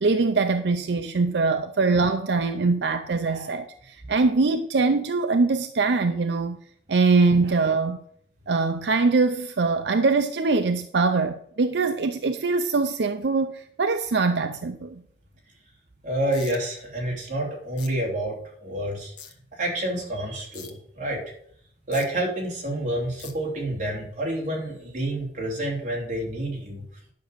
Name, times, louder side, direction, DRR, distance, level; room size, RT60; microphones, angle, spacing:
voice 1, 0.0-6.6 6.9-8.0 8.5-15.0, right 3 dB, 80° right, 0.5 m, -23 dB
voice 2, 16.0-19.1 19.5-21.2 21.9-26.8, right 1 dB, 45° right, 3.3 m, -28 dB
sound 1, 16.3-16.6 17.8-17.9 19.2-19.3 20.5-20.7 21.9-22.0 23.2-23.3, left 8 dB, 80° left, 1.5 m, -41 dB
10.5 x 6.2 x 6.7 m
head